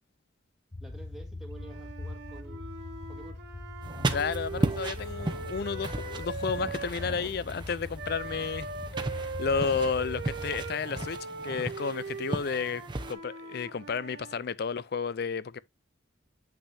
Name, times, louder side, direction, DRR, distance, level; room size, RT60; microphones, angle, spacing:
sound 1, 0.7-10.7, left 2 dB, 25° left, 1.0 m, -41 dB
voice 1, 0.8-2.7 3.1-3.4, right 2 dB, ahead, 1.9 m, -49 dB
Wind instrument woodwind instrument, 1.5-7.3 8.0-14.4, right 4 dB, 55° right, 1.5 m, -40 dB
sound 2, 3.8-13.1, right 2 dB, 25° right, 0.8 m, -36 dB
voice 2, 4.1-8.7 9.1-12.8 13.1-15.6, left 5 dB, 50° left, 0.4 m, -32 dB
8.2 x 6.0 x 2.7 m
head